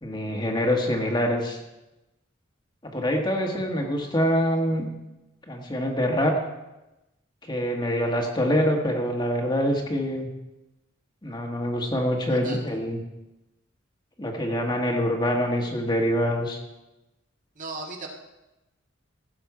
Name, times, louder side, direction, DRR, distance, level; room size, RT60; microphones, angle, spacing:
voice 1, 0.0-1.6 2.8-4.9 5.5-6.4 7.4-10.3 11.2-13.0 14.2-16.6, equal, 25° left, 1 dB, 1.4 m, -25 dB
voice 2, 12.3-12.6 17.5-18.1, right 3 dB, 40° right, 0 dB, 1.7 m, -36 dB
16.5 x 7.1 x 4.8 m, 0.99 s
head